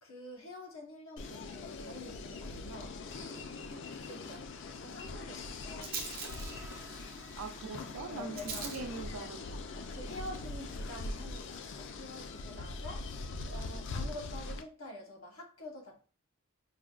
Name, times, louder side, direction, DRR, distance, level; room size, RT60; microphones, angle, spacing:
voice 1, 0.0-4.5 4.8-5.9 8.1-8.7 9.7-16.1, left 1 dB, 75° left, 1.2 m, -48 dB
newjersey OC beachsteel snipsmono, 1.2-14.6, left 3 dB, 55° left, 0.4 m, -42 dB
Rattle, 2.8-12.7, right 5 dB, 45° right, 0.7 m, -48 dB
sound 1, 6.2-13.2, right 2 dB, 15° right, 0.4 m, -57 dB
voice 2, 7.4-9.6, right 4 dB, 80° right, 0.6 m, -42 dB
4.8 x 2.1 x 2.4 m
head